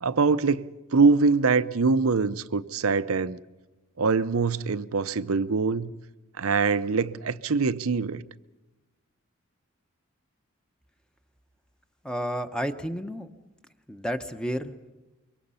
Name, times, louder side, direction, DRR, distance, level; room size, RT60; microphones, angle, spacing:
voice 1, 0.0-3.4 4.0-5.9 6.4-8.2, right 4 dB, 85° right, 0.7 m, -23 dB
voice 2, 12.0-13.3 13.9-14.9, equal, 5° left, 0.9 m, -31 dB
25.0 x 23.5 x 5.6 m
head